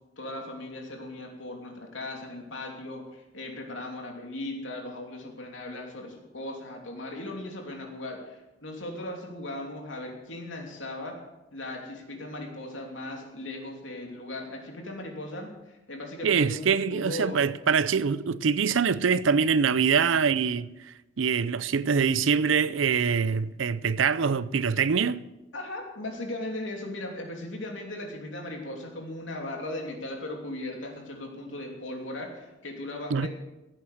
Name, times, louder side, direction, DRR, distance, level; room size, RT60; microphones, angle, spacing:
voice 1, 0.2-11.2 11.5-17.4 25.5-33.3, left 1 dB, 75° left, 2.9 m, -38 dB
voice 2, 16.2-20.7 21.2-25.2 33.1-33.3, right 6 dB, 85° right, 0.5 m, -24 dB
16.0 x 8.9 x 6.6 m
head